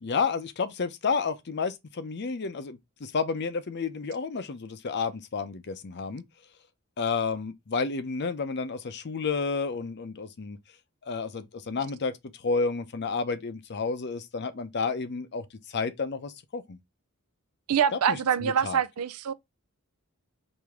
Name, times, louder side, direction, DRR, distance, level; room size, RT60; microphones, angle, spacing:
voice 1, 0.0-6.2 7.0-10.6 11.0-16.8 17.9-18.8, left 4 dB, 50° left, 0.6 m, -31 dB
voice 2, 17.7-19.3, right 8 dB, 90° right, 0.5 m, -25 dB
4.9 x 2.7 x 3.5 m
head